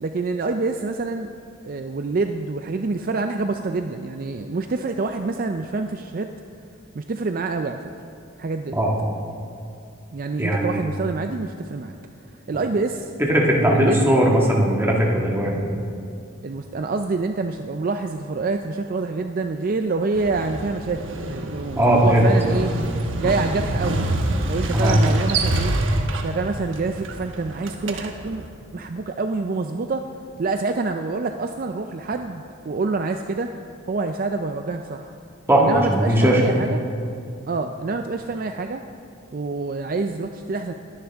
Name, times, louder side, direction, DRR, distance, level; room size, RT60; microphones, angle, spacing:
voice 1, 0.0-1.3 1.6-6.3 6.9-7.8 8.4-8.8 10.1-11.9 12.5-13.1 13.6-14.1 16.4-21.0 21.3-22.7 23.2-24.2 24.5-25.8 26.2-28.4 28.7-30.1 30.4-33.5 33.9-35.1 35.6-36.8 37.5-38.8 39.3-40.7, right 3 dB, 45° right, 6 dB, 0.4 m, -26 dB
voice 2, 10.4-10.8 13.2-15.6 21.7-22.3 24.7-25.0 35.5-36.4, equal, 10° right, -3 dB, 1.7 m, -18 dB
Motorcycle, 20.1-28.5, right 2 dB, 80° right, 1.1 m, -27 dB
21.0 x 10.0 x 3.5 m, 2.5 s
head